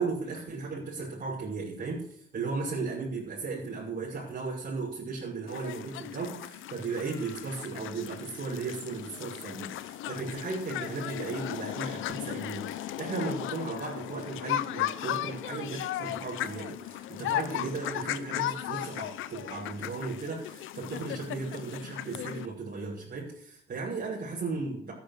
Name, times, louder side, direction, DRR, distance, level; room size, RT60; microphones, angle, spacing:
voice 1, 0.0-24.9, right 4 dB, 50° right, -7 dB, 6.1 m, -36 dB
sound 1, 5.5-22.5, left 13 dB, 85° left, 0.8 m, -36 dB
13.0 x 10.5 x 6.8 m, 0.63 s
cardioid pair, 90°, 20 cm